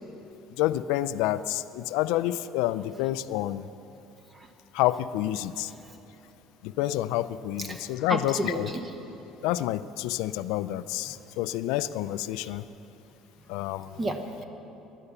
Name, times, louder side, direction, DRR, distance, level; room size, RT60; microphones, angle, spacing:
voice 1, 0.6-3.7 4.7-5.7 6.6-8.7 9.4-12.6 13.5-14.0, left 14 dB, 85° left, 14 dB, 0.4 m, -28 dB
voice 2, 5.7-6.0 7.6-8.9 11.1-11.2 12.4-12.6 13.9-14.4, right 1 dB, 15° right, 6 dB, 1.0 m, -33 dB
16.5 x 11.0 x 7.0 m, 2.9 s
cardioid pair, 175°, 0 cm